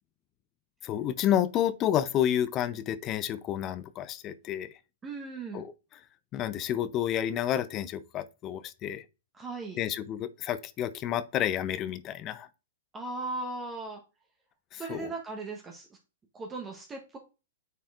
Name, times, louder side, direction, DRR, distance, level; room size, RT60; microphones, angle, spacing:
voice 1, 0.8-4.7 5.5-5.7 6.3-9.0 9.8-12.5 14.7-15.1, left 11 dB, 30° left, 0.5 m, -30 dB
voice 2, 5.0-5.6 9.3-9.8 12.9-14.0 14.7-15.9 16.3-17.2, right 3 dB, 20° right, 1.0 m, -37 dB
9.2 x 4.2 x 2.4 m
hypercardioid pair, 115°, 0 cm